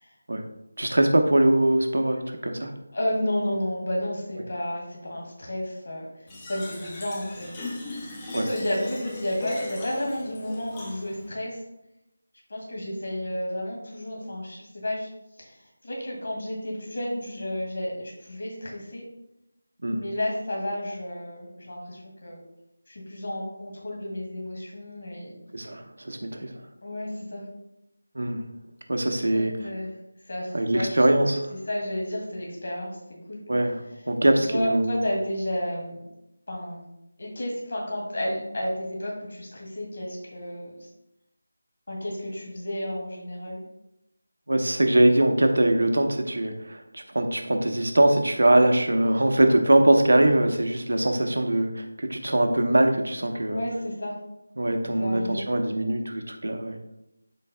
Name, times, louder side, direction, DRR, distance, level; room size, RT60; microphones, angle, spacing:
voice 1, 0.8-2.7 8.3-8.5 19.8-20.0 25.5-26.5 28.1-28.4 28.9-29.5 30.5-31.5 33.5-33.8 34.1-35.0 44.5-53.6 54.6-56.8, right 1 dB, 70° right, 4 dB, 1.1 m, -22 dB
voice 2, 2.9-6.1 6.5-7.7 8.4-11.6 12.5-15.1 15.4-19.0 19.9-22.4 22.9-25.3 26.8-27.4 29.3-29.9 30.3-31.0 31.5-33.0 33.3-33.4 34.5-36.0 36.5-36.8 37.2-40.9 41.9-43.6 53.5-54.1 55.0-55.5, left 1 dB, 40° left, -2 dB, 2.1 m, -31 dB
Fill (with liquid), 6.3-11.3, left 2 dB, 10° left, 0.5 m, -38 dB
12.5 x 4.5 x 2.2 m, 0.87 s
figure-of-eight pair, 180°, 0 cm